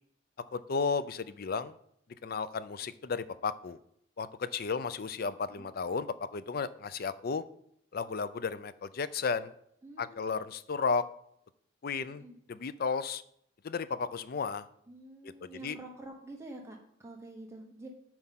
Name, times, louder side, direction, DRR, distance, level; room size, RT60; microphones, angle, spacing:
voice 1, 0.5-1.7 2.2-3.8 4.2-6.1 6.3-7.4 7.9-9.5 10.0-11.0 11.8-12.2 12.5-13.2 13.6-14.6 15.4-15.8, left 5 dB, 50° left, 15 dB, 0.4 m, -33 dB
voice 2, 9.8-10.5 12.2-12.3 14.9-17.9, right 1 dB, 15° right, 0 dB, 1.0 m, -48 dB
7.7 x 4.8 x 5.8 m, 0.72 s
head